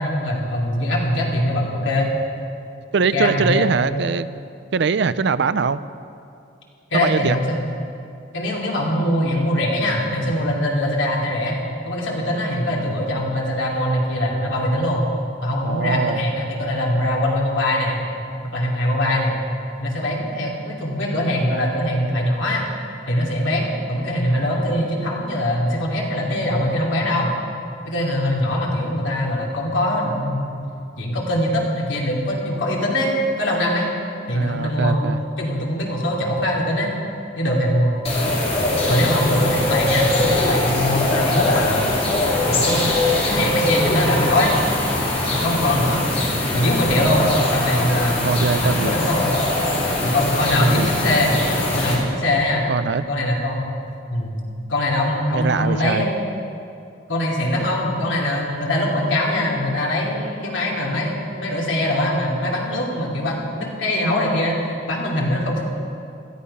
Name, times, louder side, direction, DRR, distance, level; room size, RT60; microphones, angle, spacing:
voice 1, 0.0-2.1 3.1-3.8 6.9-7.6 8.3-11.6 11.9-15.1 15.4-18.0 18.5-19.4 19.8-22.6 23.1-27.3 27.8-30.6 31.0-33.1 33.4-33.9 34.3-35.0 35.4-36.9 37.4-38.0 38.9-41.9 42.5-43.0 43.2-44.5 45.3-46.0 46.5-47.3 47.5-48.3 48.6-49.3 50.0-51.4 51.7-52.6 53.1-53.7 54.1-54.4 54.7-56.2 57.1-65.6, left 1 dB, 75° left, -2 dB, 3.0 m, -22 dB
voice 2, 2.9-4.3 4.7-5.8 6.9-7.4 15.6-16.2 34.3-35.2 48.2-49.0 50.6-50.9 52.7-53.1 55.3-56.1, right 5 dB, 60° right, 15 dB, 0.5 m, -22 dB
sound 1, 38.0-51.9, left 1 dB, 35° left, 3.3 m, -22 dB
17.0 x 13.5 x 5.6 m, 2.5 s
head